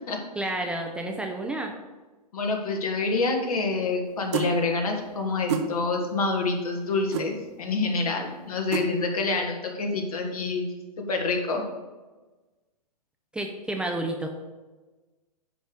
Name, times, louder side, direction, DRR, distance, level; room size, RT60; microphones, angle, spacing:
voice 1, 0.4-1.7 13.3-14.3, right 1 dB, 5° right, 2 dB, 0.6 m, -30 dB
voice 2, 2.3-10.7 11.0-11.6, left 3 dB, 65° left, 3 dB, 1.7 m, -27 dB
sound 1, 4.3-4.5 5.5-5.7 7.1-7.3 8.7-8.9, right 7 dB, 45° right, 0.9 m, -27 dB
9.9 x 3.4 x 6.5 m, 1.2 s
figure-of-eight pair, 115°, 21 cm